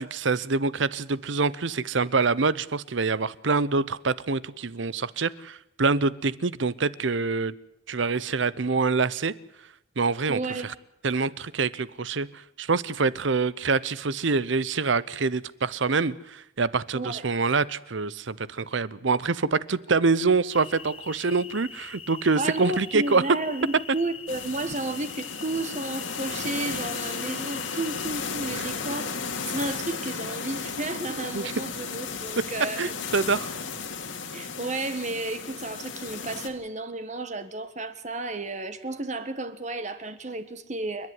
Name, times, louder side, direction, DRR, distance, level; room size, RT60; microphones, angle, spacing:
voice 1, 0.0-7.5 7.9-9.3 10.0-10.7 11.0-23.2 28.5-28.7 31.3-31.5 32.8-33.5, right 4 dB, 70° right, 18 dB, 0.8 m, -26 dB
voice 2, 10.3-10.7 16.9-17.3 22.4-29.1 29.5-32.9 34.3-41.1, right 2 dB, 35° right, 10 dB, 1.6 m, -32 dB
sound 1, 20.5-28.1, left 6 dB, 30° left, 1.4 m, -43 dB
sound 2, 24.3-36.5, left 5 dB, 75° left, 2.5 m, -34 dB
29.5 x 11.0 x 9.7 m, 0.81 s
head